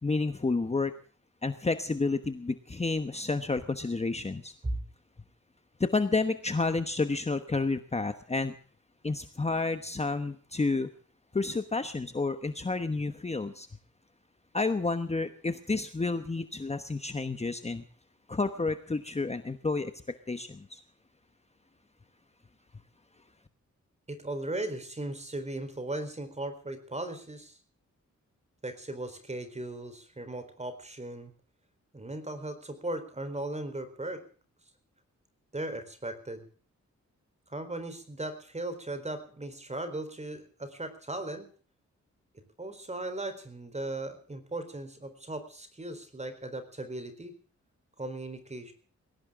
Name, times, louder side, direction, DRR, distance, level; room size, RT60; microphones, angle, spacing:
voice 1, 0.0-0.9 1.4-4.5 5.8-8.5 9.0-10.9 11.3-13.7 14.5-17.8 18.3-19.9 20.3-20.8, left 3 dB, 20° left, 9 dB, 1.1 m, -30 dB
voice 2, 24.1-27.6 28.6-31.3 31.9-34.2 35.5-36.5 37.5-41.5 42.6-47.3 48.0-48.7, right 2 dB, 25° right, 10 dB, 4.1 m, -37 dB
21.0 x 17.5 x 3.7 m, 0.44 s
wide cardioid pair, 130°, 29 cm